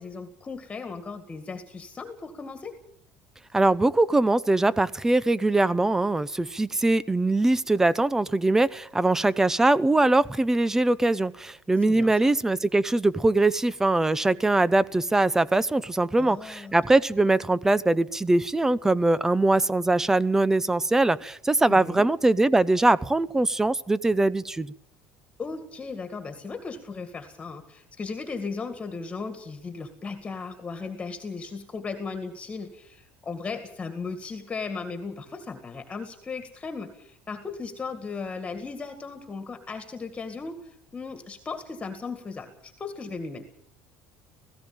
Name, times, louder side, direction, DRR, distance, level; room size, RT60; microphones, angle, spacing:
voice 1, 0.0-2.7 11.8-12.3 16.2-16.8 21.7-22.1 25.4-43.5, left 4 dB, 20° left, 7 dB, 2.0 m, -36 dB
voice 2, 3.5-24.7, right 2 dB, 10° right, 20 dB, 0.7 m, -22 dB
18.0 x 16.5 x 8.9 m, 0.70 s
cardioid pair, 130°, 5 cm